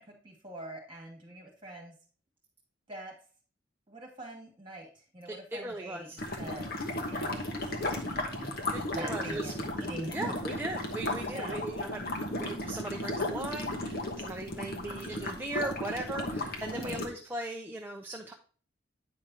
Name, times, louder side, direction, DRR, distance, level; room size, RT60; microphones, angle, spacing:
voice 1, 0.0-1.9 2.9-3.2 3.9-4.9 5.1-6.7 7.1-8.5 8.9-10.4 11.2-11.6 16.7-17.0, right 1 dB, 25° right, -1 dB, 2.4 m, -43 dB
voice 2, 5.3-6.2 8.7-9.5 10.1-18.3, right 1 dB, 10° right, 2 dB, 0.5 m, -38 dB
sound 1, 6.2-17.1, left 1 dB, 55° left, 1.1 m, -35 dB
9.2 x 5.2 x 2.9 m, 0.41 s
head